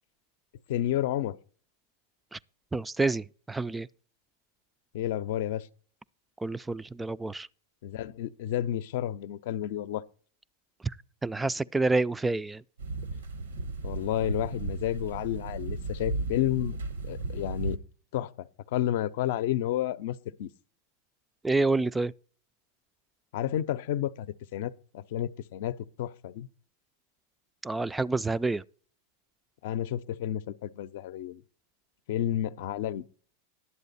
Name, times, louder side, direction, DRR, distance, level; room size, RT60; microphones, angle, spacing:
voice 1, 0.7-1.4 4.9-5.7 7.8-10.0 13.8-16.8 17.0-17.8 18.1-20.5 23.3-24.3 24.5-26.5 29.6-31.4 32.1-33.0, left 12 dB, 60° left, 0.6 m, -31 dB
voice 2, 2.7-3.9 6.4-7.5 11.2-12.6 21.4-22.1 27.6-28.6, right 3 dB, 10° right, 0.3 m, -28 dB
sound 1, 12.8-17.8, right 3 dB, 85° right, 1.1 m, -35 dB
11.0 x 8.2 x 4.1 m
hypercardioid pair, 105°, 0 cm